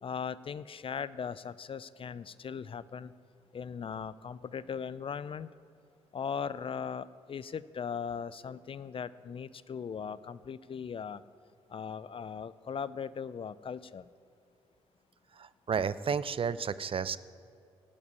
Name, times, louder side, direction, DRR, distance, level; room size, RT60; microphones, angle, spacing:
voice 1, 0.0-3.1 3.5-5.5 6.1-11.2 11.7-14.1, left 6 dB, 40° left, 17 dB, 0.5 m, -39 dB
voice 2, 15.4-17.2, right 6 dB, 45° right, 16 dB, 0.5 m, -32 dB
15.5 x 5.4 x 9.6 m, 2.5 s
hypercardioid pair, 45°, 13 cm